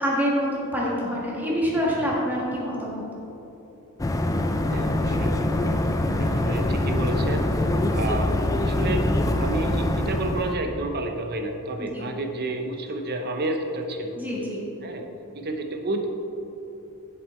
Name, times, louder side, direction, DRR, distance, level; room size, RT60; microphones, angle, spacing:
voice 1, 0.0-3.0 11.8-12.0 14.2-14.6, equal, 10° right, -5 dB, 1.6 m, -26 dB
sound 1, 4.0-10.5, left 1 dB, 15° left, 0.4 m, -24 dB
voice 2, 4.7-7.6 7.9-9.1 9.4-14.2 14.8-15.1 15.3-16.1, right 2 dB, 45° right, 5 dB, 0.7 m, -31 dB
7.5 x 7.2 x 4.3 m, 3.0 s
head